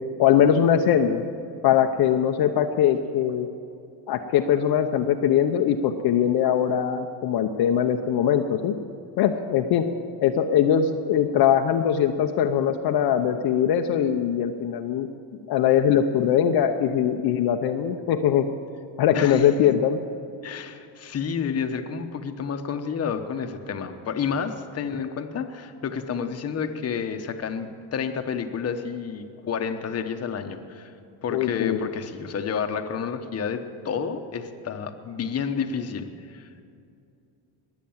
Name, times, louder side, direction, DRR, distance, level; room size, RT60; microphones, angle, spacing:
voice 1, 0.2-1.3 1.6-3.5 4.1-8.8 9.2-9.9 10.2-15.1 15.5-18.4 19.0-20.0 31.3-31.8, left 9 dB, 60° left, 4 dB, 0.8 m, -21 dB
voice 2, 19.1-19.5 20.4-30.9 31.2-36.5, left 6 dB, 35° left, 7 dB, 1.1 m, -30 dB
21.0 x 8.3 x 7.3 m, 2.6 s
cardioid pair, 125°, 44 cm